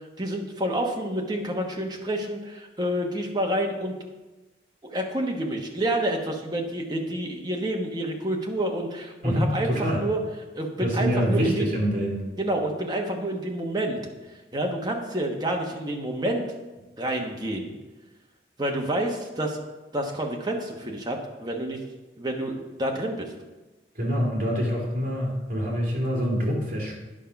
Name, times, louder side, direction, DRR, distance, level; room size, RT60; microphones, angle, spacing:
voice 1, 0.2-4.0 4.8-10.2 10.6-11.7 12.4-14.0 14.5-16.4 17.0-17.7 18.6-19.6 19.9-21.8 22.2-23.3, right 1 dB, 25° right, 1 dB, 1.2 m, -28 dB
voice 2, 9.2-10.0 10.8-12.2 23.9-27.0, equal, 45° right, -4 dB, 3.0 m, -25 dB
10.0 x 5.6 x 5.8 m, 1.1 s
head